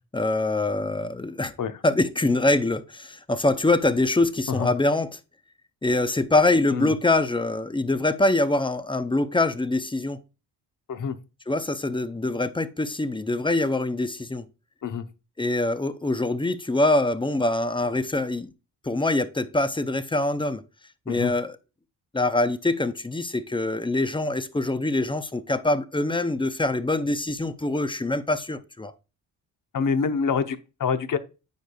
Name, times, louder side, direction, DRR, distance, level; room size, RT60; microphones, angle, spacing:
voice 1, 0.1-1.5 1.8-5.2 5.8-10.2 11.5-14.5 15.4-18.5 18.8-20.6 21.1-21.6 22.1-28.9, left 2 dB, 10° left, 0.6 m, -24 dB
voice 2, 29.7-31.2, left 6 dB, 45° left, 0.9 m, -26 dB
9.3 x 4.8 x 2.3 m
supercardioid pair, 65°, 44 cm